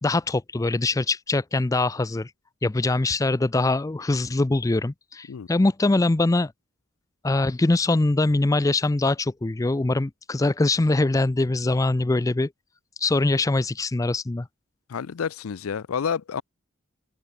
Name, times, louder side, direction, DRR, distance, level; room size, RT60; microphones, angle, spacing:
voice 1, 0.0-2.3 2.6-6.5 7.2-12.5 13.0-14.5, left 2 dB, 15° left, 0.4 m, -23 dB
voice 2, 14.9-16.4, left 7 dB, 80° left, 0.5 m, -29 dB
open air
head